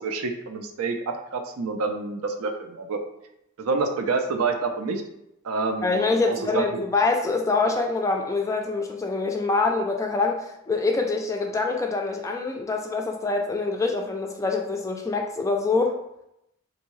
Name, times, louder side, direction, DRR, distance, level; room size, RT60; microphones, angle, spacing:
voice 1, 0.0-3.0 3.6-5.0 5.4-6.0 6.3-6.8, right 4 dB, 85° right, 6 dB, 0.5 m, -28 dB
voice 2, 5.8-16.0, left 3 dB, 15° left, 2 dB, 0.3 m, -25 dB
3.5 x 2.6 x 3.1 m, 0.82 s
head